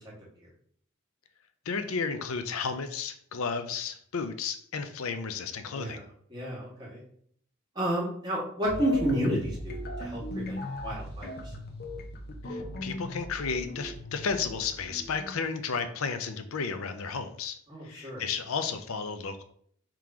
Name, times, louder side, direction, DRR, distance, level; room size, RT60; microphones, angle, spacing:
voice 1, 1.7-6.0 12.5-17.6 17.8-19.4, left 5 dB, 80° left, 8 dB, 0.5 m, -33 dB
voice 2, 6.3-7.0 7.8-11.3 17.7-18.2, right 1 dB, 20° right, -6 dB, 1.8 m, -31 dB
sound 1, 8.7-15.4, left 1 dB, 50° left, 0.7 m, -38 dB
3.7 x 3.0 x 4.8 m, 0.63 s
head